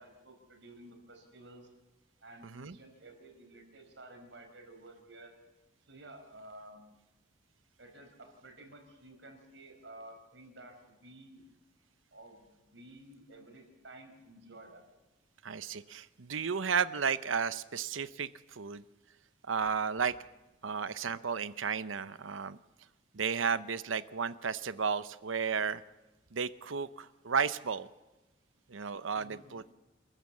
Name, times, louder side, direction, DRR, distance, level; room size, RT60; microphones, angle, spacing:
voice 1, 0.0-1.7 2.2-5.3 5.9-6.8 7.8-11.4 12.1-14.8 29.1-29.6, right 1 dB, 70° right, 4 dB, 4.9 m, -53 dB
voice 2, 15.4-18.3 18.6-18.8 19.5-20.1 20.6-22.6 23.1-25.8 26.3-27.9 28.7-29.6, right 6 dB, 85° right, 14 dB, 0.8 m, -33 dB
27.5 x 14.0 x 7.4 m, 1.1 s
head